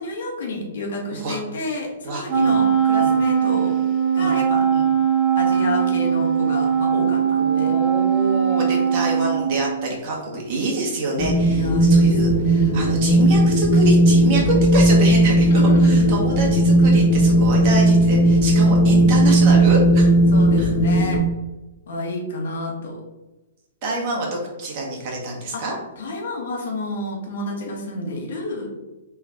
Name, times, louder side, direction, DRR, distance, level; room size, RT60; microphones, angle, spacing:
voice 1, 0.0-3.7 4.1-4.6 5.3-7.7 11.5-12.4 15.3-16.1 20.3-21.2 21.9-23.0 25.5-25.6 26.0-28.7, left 2 dB, 70° left, -1 dB, 1.0 m, -29 dB
voice 2, 2.0-2.6 3.0-3.1 4.2-4.4 4.7-4.8 7.4-20.1 20.6-20.7 23.8-25.7, right 2 dB, 45° right, -1 dB, 1.2 m, -26 dB
Wind instrument woodwind instrument, 2.3-9.9, right 7 dB, 30° right, 0.6 m, -20 dB
Wind, 11.2-21.2, right 1 dB, 40° left, 0.5 m, -16 dB
3.3 x 2.4 x 3.4 m, 1.0 s
hypercardioid pair, 120°, 0 cm